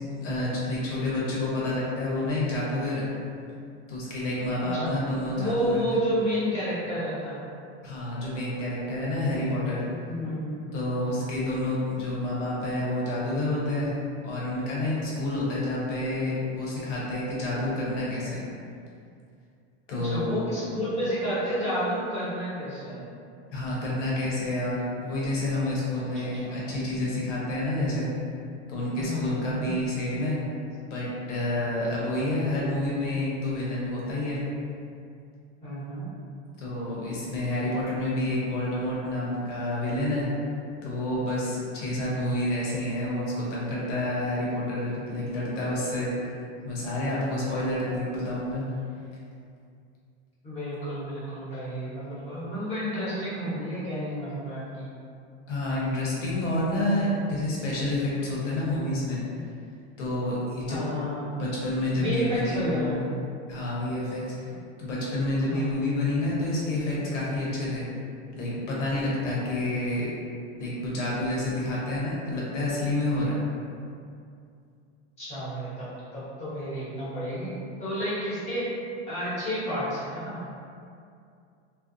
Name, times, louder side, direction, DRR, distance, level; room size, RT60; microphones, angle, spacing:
voice 1, 0.1-3.1 3.9-5.8 7.8-9.8 10.7-13.9 14.2-18.4 19.9-20.3 23.5-28.1 28.7-30.4 30.9-34.4 36.6-40.3 40.8-46.1 46.6-48.6 55.5-59.2 60.0-60.8 61.4-63.1 63.5-64.5 64.8-67.9 68.3-70.1 70.6-73.4, left 1 dB, 90° left, -6 dB, 1.0 m, -29 dB
voice 2, 4.6-4.9 5.3-7.4 10.0-10.8 19.9-23.0 25.9-26.5 28.9-29.7 35.6-36.1 47.8-48.1 50.4-54.9 60.7-61.3 61.9-62.9 65.4-65.6 75.2-77.5 77.8-78.7 79.1-80.4, equal, 20° left, -11 dB, 0.9 m, -31 dB
2.5 x 2.0 x 2.6 m, 2.4 s
supercardioid pair, 150°, 35 cm